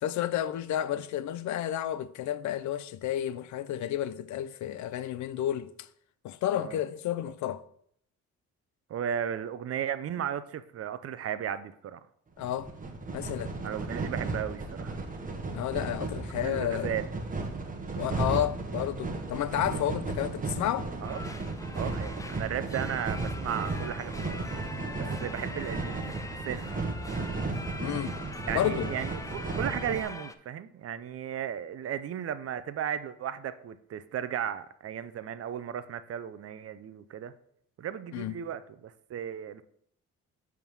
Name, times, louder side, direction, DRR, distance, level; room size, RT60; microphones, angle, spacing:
voice 1, 0.0-5.9 6.2-7.6 12.4-12.7 13.1-13.6 15.5-17.0 18.0-20.9 27.8-28.2 28.5-28.9 38.1-38.4, left 11 dB, 70° left, 0.5 m, -31 dB
voice 2, 8.9-12.0 13.6-15.0 16.4-17.1 21.0-21.3 21.7-24.4 25.0-26.8 28.4-37.3 37.8-39.6, right 9 dB, 50° right, 0.6 m, -35 dB
sound 1, 12.4-30.0, right 3 dB, 25° right, 1.2 m, -35 dB
sound 2, 21.0-30.3, left 2 dB, 10° left, 0.5 m, -43 dB
7.1 x 3.6 x 6.1 m
cardioid pair, 90°, 30 cm